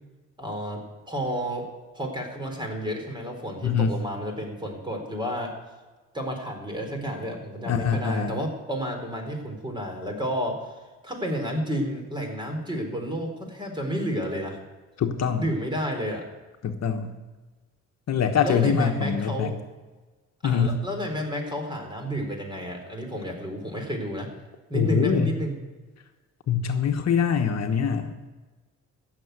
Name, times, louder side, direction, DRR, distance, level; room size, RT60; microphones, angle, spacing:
voice 1, 0.4-0.8 1.1-1.7 1.9-5.5 6.1-10.7 11.0-14.6 15.4-16.3 18.4-19.5 20.4-24.3 24.7-25.6, equal, 15° right, 3 dB, 4.0 m, -31 dB
voice 2, 7.6-8.3 15.0-15.5 16.6-17.1 18.1-19.5 20.4-20.8 24.7-25.3 26.5-28.1, left 7 dB, 60° left, 5 dB, 1.2 m, -24 dB
15.5 x 7.2 x 8.1 m, 1.3 s
cardioid pair, 90°, 30 cm